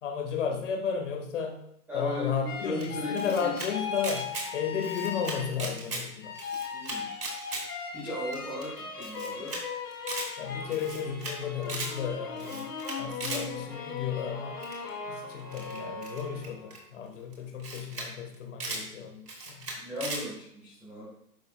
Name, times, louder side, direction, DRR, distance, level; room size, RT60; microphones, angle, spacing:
voice 1, 0.0-1.6 1.9-6.4 10.4-12.7 13.0-14.6 15.1-19.7, left 7 dB, 50° left, 2 dB, 1.8 m, -33 dB
voice 2, 1.9-3.5 6.7-7.1 7.9-9.6 19.8-21.1, left 1 dB, 5° right, -10 dB, 1.6 m, -36 dB
sound 1, 2.5-5.9 6.2-16.8, left 5 dB, 85° left, 2.1 m, -39 dB
Camera, 2.8-3.7 4.0-4.5 4.8-6.0 6.4-7.6 8.0-8.1 8.3-8.4 8.6-8.7 9.0-9.6 9.9-10.3 10.7-11.3 11.6-11.9 12.4-13.4 14.6-14.9 15.5-16.8 17.3-17.4 17.6-18.1 18.3-18.8 19.3-20.2, right 2 dB, 90° right, 3.0 m, -37 dB
11.0 x 5.5 x 2.4 m, 0.73 s
hypercardioid pair, 150°, 46 cm